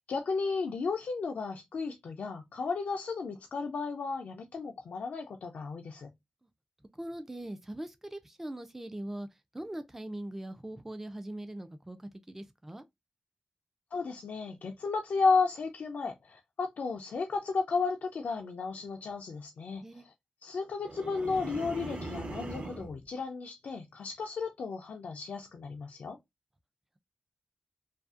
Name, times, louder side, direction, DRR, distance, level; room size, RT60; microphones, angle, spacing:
voice 1, 0.1-6.1 13.9-20.1 20.4-26.2, left 4 dB, 75° left, 0.3 m, -33 dB
voice 2, 6.9-9.3 9.5-12.8 19.7-20.1, right 1 dB, 10° right, 0.3 m, -41 dB
sound 1, 20.8-23.0, right 2 dB, 55° right, 0.7 m, -40 dB
2.5 x 2.3 x 2.4 m
cardioid pair, 60°, 3 cm